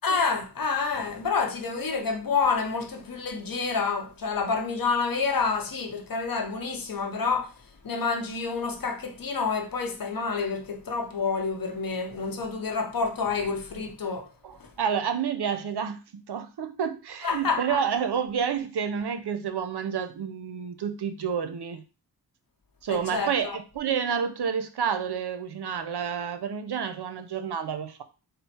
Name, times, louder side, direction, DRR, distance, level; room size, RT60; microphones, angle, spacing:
voice 1, 0.0-7.5 7.8-14.3 14.6-14.7 17.2-17.8 22.9-23.6, left 4 dB, 60° left, 0.8 m, -28 dB
voice 2, 14.4-21.8 22.8-28.0, right 7 dB, 75° right, 0.6 m, -29 dB
4.1 x 2.0 x 4.2 m
cardioid pair, 55°, 40 cm